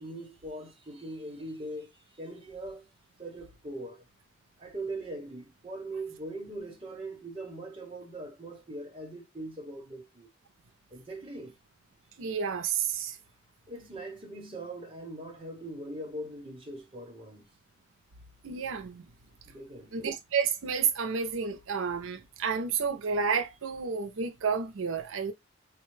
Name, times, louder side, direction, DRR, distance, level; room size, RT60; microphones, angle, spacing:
voice 1, 0.0-1.9 2.2-2.9 3.2-4.0 4.6-10.3 10.9-11.5 13.7-17.5 19.5-20.1, right 1 dB, 25° right, 0.9 m, -41 dB
voice 2, 12.2-13.2 18.4-19.0 19.9-25.3, right 6 dB, 90° right, 0.5 m, -30 dB
4.4 x 2.2 x 3.1 m
head